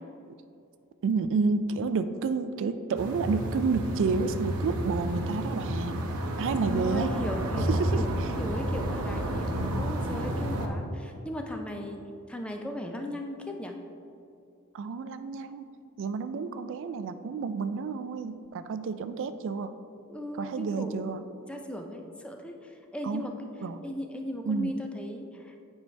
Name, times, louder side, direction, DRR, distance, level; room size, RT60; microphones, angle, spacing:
voice 1, 1.0-6.0 6.4-7.1 7.7-8.3 14.7-15.7 16.0-19.7 20.4-21.2 23.0-23.3 23.6-23.8 24.4-24.8, right 4 dB, 60° right, 11 dB, 0.3 m, -30 dB
sound 1, 3.0-10.7, right 1 dB, 80° right, 0.7 m, -31 dB
voice 2, 6.7-8.1 8.4-12.0 12.3-13.8 20.1-21.0 21.5-23.5 23.8-25.7, equal, 5° left, 3 dB, 0.4 m, -37 dB
9.5 x 4.6 x 3.3 m, 2.6 s
head